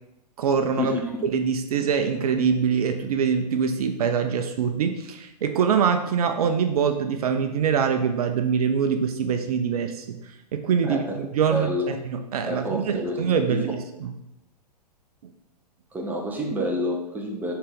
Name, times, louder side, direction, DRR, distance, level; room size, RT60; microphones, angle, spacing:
voice 1, 0.4-1.0 1.2-14.1, right 6 dB, 60° right, 7 dB, 0.7 m, -24 dB
voice 2, 11.5-11.8 12.4-13.2 13.5-13.6 15.9-17.5, left 1 dB, 10° right, 1 dB, 0.9 m, -28 dB
7.0 x 3.9 x 3.7 m, 0.91 s
hypercardioid pair, 125°, 21 cm